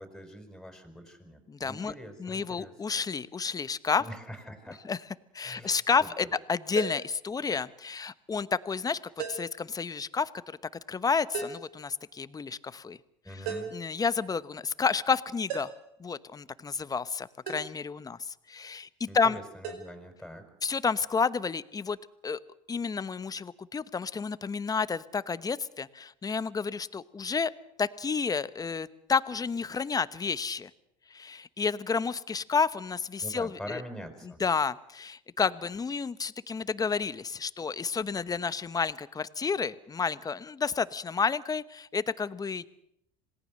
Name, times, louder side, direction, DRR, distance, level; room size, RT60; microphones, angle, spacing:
voice 1, 0.0-2.7 4.0-4.8 5.4-5.7 6.0-6.1 13.2-13.7 19.1-20.4 33.2-34.4, equal, ahead, 6 dB, 5.5 m, -44 dB
voice 2, 1.5-4.0 4.8-5.0 5.3-9.0 9.3-10.3 10.9-13.0 13.7-15.7 16.0-19.4 20.6-22.0 22.2-22.4 22.7-27.5 27.8-30.7 31.1-33.8 34.4-42.7, left 5 dB, 20° left, 16 dB, 1.0 m, -30 dB
sound 1, 6.8-7.1 9.2-9.6 11.3-11.7 13.5-13.9 15.5-15.9 17.5-17.7 19.6-19.8, right 6 dB, 80° right, 4.6 m, -36 dB
26.5 x 18.5 x 6.6 m, 0.75 s
supercardioid pair, 90°, 17 cm